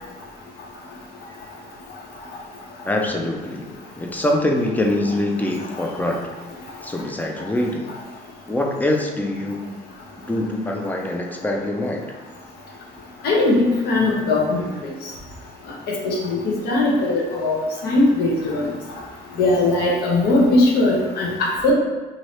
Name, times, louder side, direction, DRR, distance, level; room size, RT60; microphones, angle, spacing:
voice 1, 2.9-3.7 4.0-6.3 6.8-7.9 8.5-9.7 10.3-12.1, left 1 dB, 10° left, 1 dB, 0.4 m, -24 dB
voice 2, 13.2-14.7 15.0-15.1 15.9-18.7 19.4-21.7, left 2 dB, 70° left, -3 dB, 0.9 m, -19 dB
2.7 x 2.7 x 3.2 m, 1.2 s
cardioid pair, 110°, 17 cm